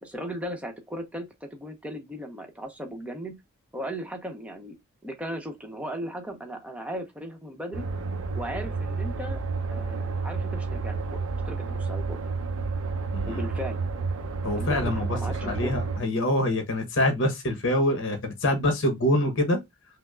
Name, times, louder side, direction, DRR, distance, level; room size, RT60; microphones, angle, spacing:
voice 1, 0.0-3.4 3.7-4.8 5.0-7.9 8.3-9.4 9.7-11.2 11.5-12.2 13.2-13.8 14.5-15.8, equal, 5° right, 0.8 m, -36 dB
sound 1, 7.7-16.0, right 4 dB, 85° right, 0.6 m, -30 dB
voice 2, 13.1-13.4 14.4-15.1 15.4-19.6, left 1 dB, 60° left, 0.9 m, -25 dB
5.7 x 2.0 x 2.3 m
head